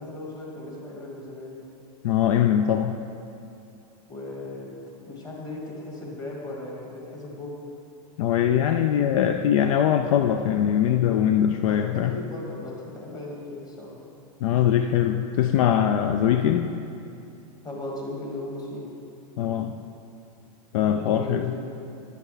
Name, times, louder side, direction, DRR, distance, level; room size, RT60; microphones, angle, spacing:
voice 1, 0.0-1.7 4.1-7.6 11.7-14.0 17.6-18.9 20.8-21.6, left 2 dB, 20° left, -3 dB, 1.7 m, -37 dB
voice 2, 2.0-3.0 8.2-12.2 14.4-16.7 19.4-19.8 20.7-21.5, left 10 dB, 65° left, 7 dB, 0.4 m, -22 dB
10.5 x 6.9 x 3.3 m, 2.6 s
hypercardioid pair, 130°, 19 cm